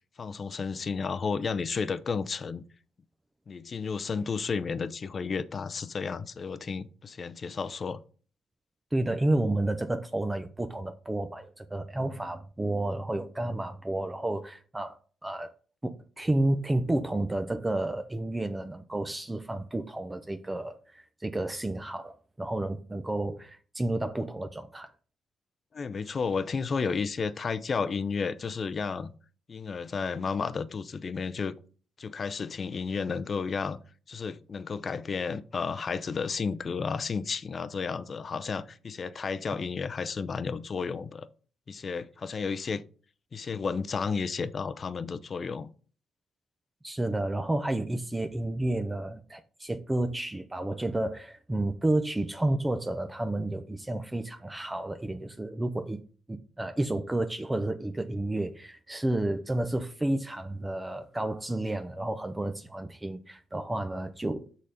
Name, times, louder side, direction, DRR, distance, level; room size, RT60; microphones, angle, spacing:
voice 1, 0.2-2.6 3.5-8.0 25.7-29.1 29.5-31.5 32.0-33.8 34.1-41.3 41.7-42.8 43.3-45.7, left 5 dB, 40° left, 0.5 m, -32 dB
voice 2, 8.9-15.5 15.8-24.9 46.8-56.0 56.3-64.5, right 1 dB, 15° right, 0.5 m, -31 dB
6.5 x 4.0 x 5.0 m
cardioid pair, 90°, 0 cm